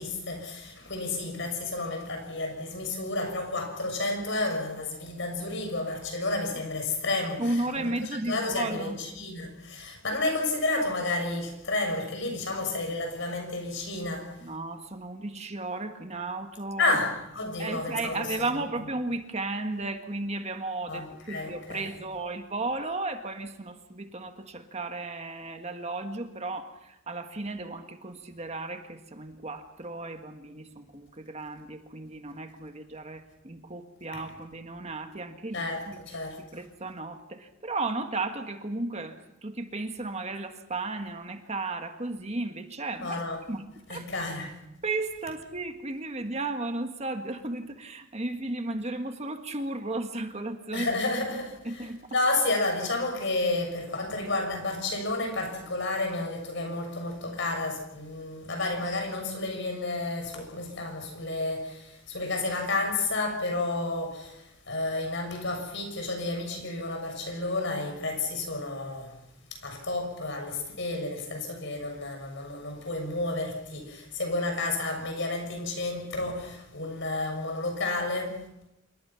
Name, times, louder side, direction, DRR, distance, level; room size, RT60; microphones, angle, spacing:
voice 1, 0.0-7.9 8.2-14.4 16.8-18.3 20.9-21.9 34.1-34.2 35.5-36.4 43.0-43.4 43.9-44.6 50.7-51.8 52.1-69.1 69.5-78.4, left 2 dB, 60° left, 6.8 m, -31 dB
voice 2, 7.4-9.0 14.4-17.0 17.6-36.0 36.4-43.2 43.5-44.1 44.8-50.9 51.6-52.0, right 2 dB, 30° right, 1.6 m, -34 dB
27.5 x 23.0 x 5.9 m
head